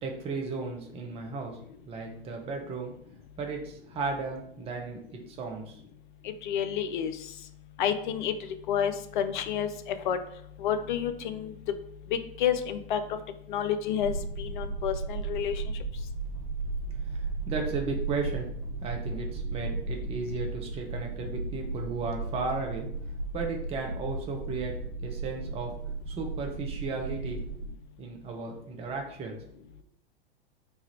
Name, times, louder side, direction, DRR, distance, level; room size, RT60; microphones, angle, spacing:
voice 1, 0.0-1.6 1.9-2.9 3.4-5.8 17.1-18.5 18.8-22.9 23.3-24.7 25.0-25.7 26.1-27.4 28.0-29.4, right 4 dB, 20° right, 2 dB, 0.7 m, -35 dB
voice 2, 6.4-7.1 7.8-8.3 8.7-10.2 10.6-11.5 12.1-13.0 13.5-15.6, left 9 dB, 55° left, 10 dB, 0.5 m, -29 dB
sound 1, 14.0-27.7, right 3 dB, 60° right, 0.7 m, -35 dB
3.3 x 2.3 x 4.3 m, 0.70 s
figure-of-eight pair, 100°, 30 cm